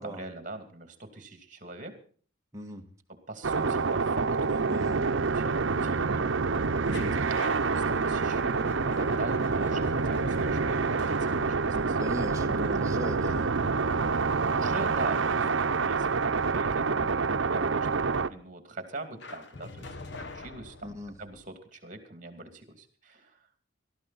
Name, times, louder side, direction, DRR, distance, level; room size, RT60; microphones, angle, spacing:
voice 1, 0.0-2.0 3.1-6.3 6.9-7.5 7.7-12.0 14.5-23.4, right 2 dB, 40° right, 7 dB, 2.5 m, -42 dB
voice 2, 2.5-2.8 4.7-5.0 6.8-7.1 12.0-13.5 20.8-21.1, equal, 15° right, 2 dB, 1.5 m, -37 dB
sound 1, 3.4-18.3, right 4 dB, 85° right, 0.8 m, -27 dB
sound 2, 6.9-13.7 19.2-21.4, left 3 dB, 65° left, 1.3 m, -45 dB
19.5 x 13.0 x 4.1 m, 0.43 s
head